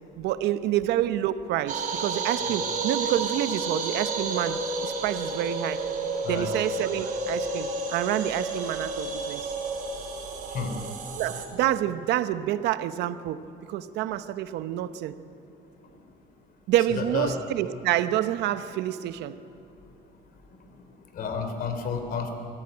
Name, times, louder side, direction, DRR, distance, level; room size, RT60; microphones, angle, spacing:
voice 1, 0.0-5.8 6.3-9.5 11.2-15.2 16.7-19.4, right 12 dB, 85° right, 13 dB, 0.9 m, -28 dB
sound 1, 1.7-11.4, right 3 dB, 50° right, 3.7 m, -31 dB
voice 2, 17.0-17.3 21.1-22.3, left 5 dB, 60° left, 6 dB, 3.1 m, -30 dB
24.0 x 14.5 x 8.9 m, 2.9 s
cardioid pair, 110°, 17 cm